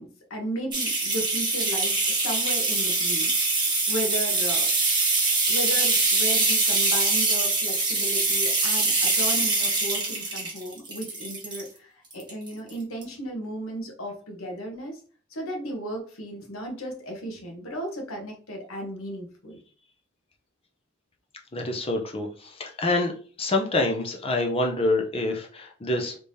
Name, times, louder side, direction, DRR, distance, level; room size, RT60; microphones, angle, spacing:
voice 1, 0.0-4.7 5.4-15.0 15.3-19.6, right 1 dB, 70° left, 2 dB, 1.1 m, -35 dB
sound 1, 0.7-11.7 12.1-12.7 13.0-13.1, right 3 dB, 20° right, 1.2 m, -24 dB
voice 2, 21.5-23.1 23.4-26.2, left 2 dB, 30° left, 2 dB, 0.6 m, -26 dB
3.4 x 3.3 x 2.7 m, 0.42 s
head